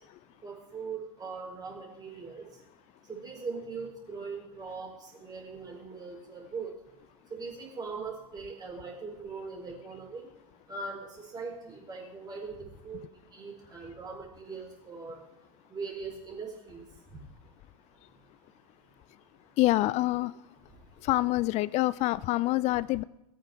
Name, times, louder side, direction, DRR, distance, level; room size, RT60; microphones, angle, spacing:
voice 1, 0.4-2.4 3.1-4.9 5.2-6.7 7.3-10.3 10.7-12.6 12.8-13.0 13.3-15.2 15.7-16.8, right 4 dB, 20° right, 4.1 m, -40 dB
voice 2, 19.6-20.3 21.1-23.0, left 18 dB, 40° left, 0.4 m, -26 dB
18.0 x 8.7 x 3.5 m
figure-of-eight pair, 85°, 18 cm